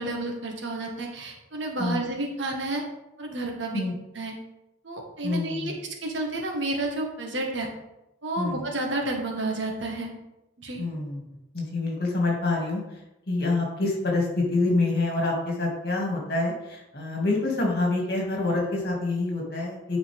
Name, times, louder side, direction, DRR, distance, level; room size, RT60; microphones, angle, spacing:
voice 1, 0.0-2.8 3.2-3.8 4.1-4.3 4.8-5.7 6.0-7.7 8.2-10.1 10.6-10.8, right 2 dB, 70° right, 1 dB, 1.6 m, -30 dB
voice 2, 5.2-5.8 8.4-8.6 10.8-11.2 11.5-13.0 13.3-20.0, left 2 dB, 50° left, -2 dB, 2.3 m, -26 dB
9.5 x 5.3 x 3.5 m, 0.93 s
head